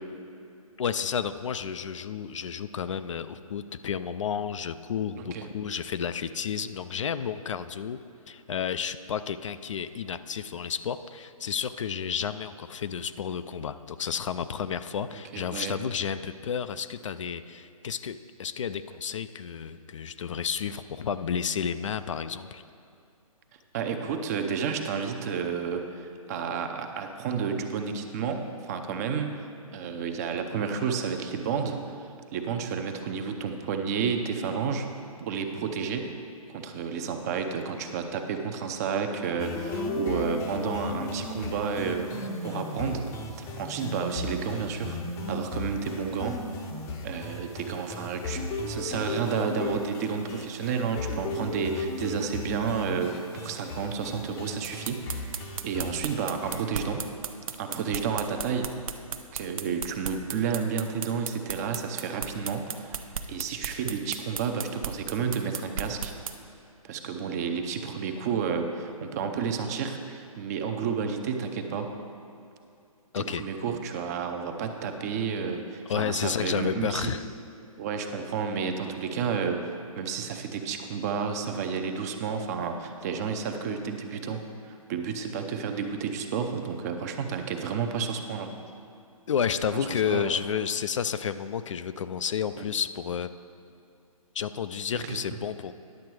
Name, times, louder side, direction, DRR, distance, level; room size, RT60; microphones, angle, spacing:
voice 1, 0.8-8.0 8.3-22.6 73.1-73.4 75.9-77.2 89.3-93.3 94.3-95.7, left 7 dB, 55° left, 11 dB, 0.4 m, -31 dB
voice 2, 5.2-5.5 15.3-15.8 23.7-29.4 29.7-34.9 35.2-36.1 36.5-42.1 42.4-45.0 45.3-46.4 47.0-57.0 57.6-58.8 59.3-66.1 66.8-71.9 73.2-77.1 77.8-84.4 84.7-88.5 89.7-90.3 92.6-92.7 94.9-95.2, right 6 dB, 25° right, 5 dB, 0.6 m, -31 dB
sound 1, 39.4-56.6, left 2 dB, 15° left, 0.6 m, -35 dB
sound 2, 54.6-66.3, right 6 dB, 65° right, 0.8 m, -34 dB
10.5 x 7.4 x 4.7 m, 2.6 s
hypercardioid pair, 145°, 19 cm